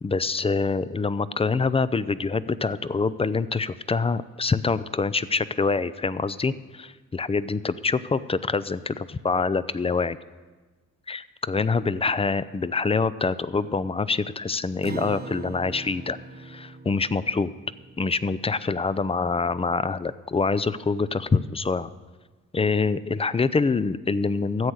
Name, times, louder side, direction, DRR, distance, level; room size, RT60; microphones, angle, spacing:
voice 1, 0.0-10.2 11.1-17.5 18.0-21.9 22.5-24.7, left 4 dB, 20° left, 16 dB, 0.5 m, -25 dB
Acoustic guitar, 14.8-19.5, right 3 dB, 30° right, 0.7 m, -41 dB
13.5 x 8.0 x 6.4 m, 1.3 s
supercardioid pair, 60°, 32 cm